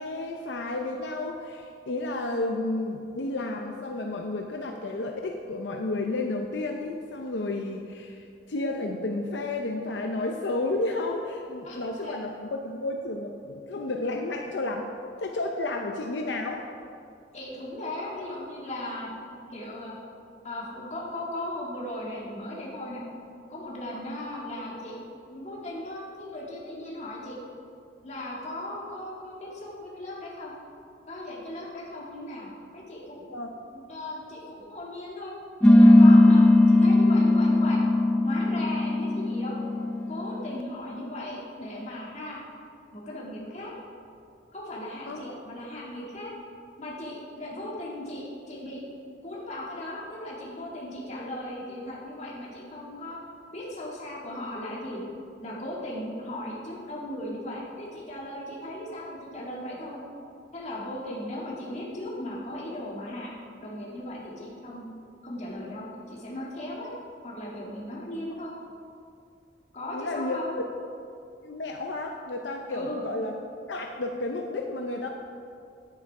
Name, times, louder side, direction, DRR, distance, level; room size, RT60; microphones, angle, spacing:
voice 1, 0.0-14.9 15.2-16.6 23.9-24.0 33.3-33.5 45.1-45.3 69.9-70.4 71.4-73.3 73.7-75.1, left 2 dB, 75° left, 2 dB, 0.6 m, -32 dB
voice 2, 11.6-12.2 17.3-20.0 20.4-23.0 23.5-25.0 25.3-27.4 28.0-30.5 31.1-33.3 33.7-35.3 35.6-37.8 38.2-39.7 40.1-42.4 42.9-43.7 44.5-46.3 46.8-48.8 49.2-53.2 53.5-55.0 55.4-60.0 60.5-63.3 63.6-64.8 65.2-66.9 67.2-68.5 69.7-70.6 72.7-73.0, left 1 dB, 40° left, -5 dB, 2.2 m, -37 dB
sound 1, 35.6-40.6, left 2 dB, 5° left, 0.3 m, -18 dB
9.7 x 8.8 x 4.8 m, 2.5 s
head